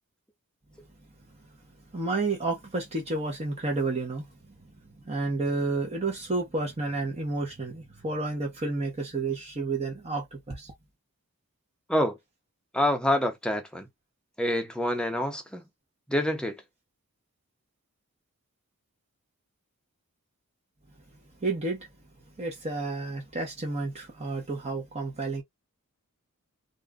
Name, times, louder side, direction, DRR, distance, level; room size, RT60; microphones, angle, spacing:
voice 1, 1.9-4.3 5.0-10.7 21.4-21.9 22.4-25.4, right 3 dB, 30° right, 0.9 m, -30 dB
voice 2, 12.7-13.9 14.4-15.6 16.1-16.6, left 1 dB, 5° left, 0.6 m, -27 dB
2.6 x 2.4 x 3.5 m
head